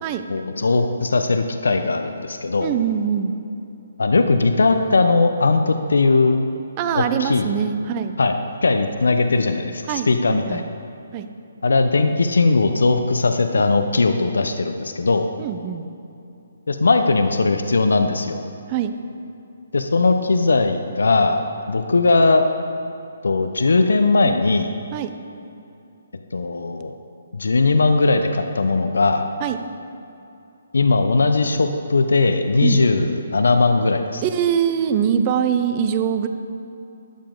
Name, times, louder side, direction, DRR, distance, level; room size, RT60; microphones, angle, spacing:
voice 1, 0.3-2.7 4.0-6.4 6.9-7.5 8.2-8.3 8.6-10.6 11.6-15.3 16.7-18.4 19.7-22.4 23.2-24.7 26.3-26.9 27.3-29.3 30.7-34.2, left 3 dB, 80° left, 7 dB, 0.7 m, -19 dB
voice 2, 2.6-3.3 6.8-8.2 9.9-10.7 11.1-11.3 15.4-15.9 18.7-18.9 24.9-25.1 29.4-29.6 32.6-32.8 34.2-36.3, right 8 dB, 30° right, 9 dB, 0.6 m, -23 dB
12.0 x 8.6 x 3.8 m, 2.7 s
hypercardioid pair, 145°, 0 cm